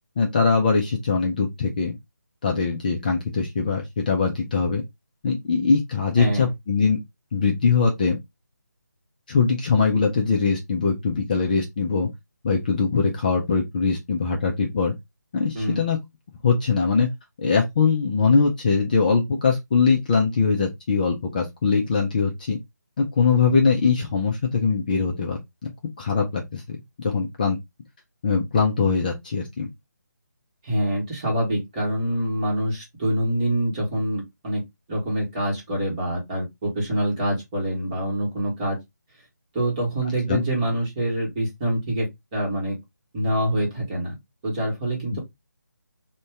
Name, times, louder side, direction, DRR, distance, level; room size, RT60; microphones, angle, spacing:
voice 1, 0.2-2.0 2.4-4.8 5.2-7.0 7.3-8.2 9.3-12.1 12.4-14.9 15.3-16.0 16.4-17.1 17.4-22.6 23.0-25.4 26.0-27.6 28.2-29.7 40.3-40.4 45.1-45.2, left 5 dB, 25° left, 0.4 m, -22 dB
voice 2, 6.2-6.5 15.5-15.8 30.6-34.6 34.9-38.8 39.5-42.8 43.1-44.2 44.4-45.2, right 1 dB, 20° right, 1.2 m, -25 dB
2.6 x 2.2 x 3.3 m
figure-of-eight pair, 160°, 10 cm